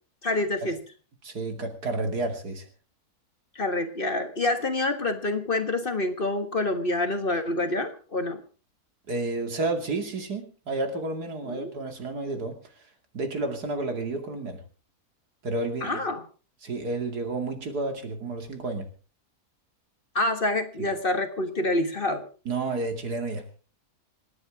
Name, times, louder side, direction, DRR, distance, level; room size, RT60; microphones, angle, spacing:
voice 1, 0.2-0.8 3.5-8.4 11.5-11.7 15.8-16.2 20.1-22.3, left 2 dB, 35° left, 8 dB, 1.6 m, -27 dB
voice 2, 1.2-2.7 9.1-12.6 13.1-14.6 15.4-16.1 16.6-18.9 22.4-23.4, right 2 dB, 90° right, 5 dB, 3.0 m, -31 dB
27.0 x 9.8 x 3.6 m, 0.37 s
omnidirectional pair, 1.6 m